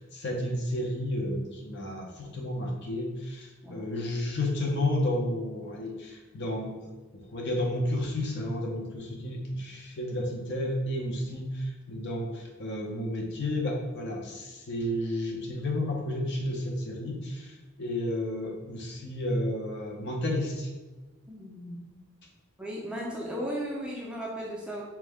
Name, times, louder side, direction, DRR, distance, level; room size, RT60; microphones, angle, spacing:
voice 1, 0.0-20.7, left 1 dB, 50° left, 0 dB, 0.6 m, -32 dB
voice 2, 21.3-21.9 22.6-24.8, equal, 5° right, -4 dB, 0.4 m, -36 dB
4.4 x 2.1 x 3.4 m, 1.2 s
head